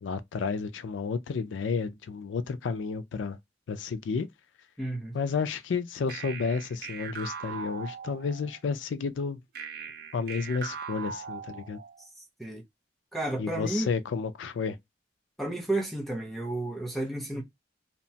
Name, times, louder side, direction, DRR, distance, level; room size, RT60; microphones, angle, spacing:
voice 1, 0.0-3.4 3.7-4.3 5.1-9.4 10.1-11.8 13.4-14.8, left 5 dB, 90° left, 0.4 m, -31 dB
voice 2, 4.8-5.2 12.0-12.1 12.4-12.6 13.1-13.9 15.4-17.4, right 1 dB, ahead, 0.5 m, -32 dB
sound 1, 6.1-8.6 9.6-12.1, right 6 dB, 55° right, 0.4 m, -40 dB
2.9 x 2.1 x 2.7 m
head